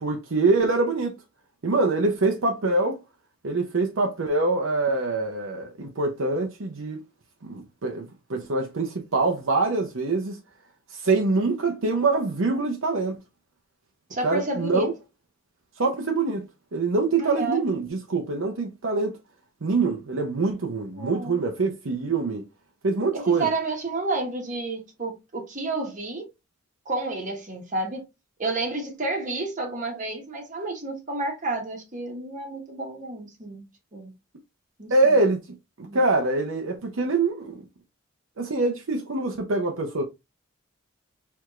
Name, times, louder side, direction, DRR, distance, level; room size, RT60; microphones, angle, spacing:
voice 1, 0.0-1.1 1.6-3.0 3.4-7.0 7.4-10.4 10.9-13.2 14.2-14.9 15.8-16.5 16.7-19.1 19.6-22.4 22.8-23.5 34.9-35.4 35.8-37.6 38.4-40.0, right 3 dB, 70° right, 0.7 m, -24 dB
voice 2, 14.1-14.9 17.2-17.6 20.9-21.4 23.1-26.2 26.9-28.0 28.4-33.7 33.9-34.1 34.8-34.9 35.8-36.0, right 2 dB, 35° right, 1.1 m, -30 dB
4.6 x 3.5 x 2.4 m
head